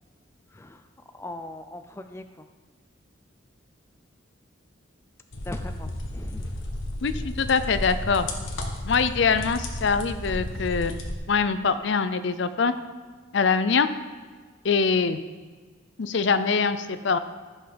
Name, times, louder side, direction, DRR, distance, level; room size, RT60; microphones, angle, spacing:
voice 1, 0.5-0.8 1.1-2.5 5.4-6.5, left 1 dB, 15° left, 7 dB, 0.4 m, -40 dB
sound 1, 5.3-11.1, left 1 dB, 80° left, 1.3 m, -33 dB
voice 2, 7.0-8.3 8.8-10.9 11.3-12.7 13.3-13.9 14.6-15.2 16.0-17.2, left 5 dB, 65° left, 12 dB, 0.5 m, -23 dB
15.0 x 5.8 x 5.1 m, 1.5 s
head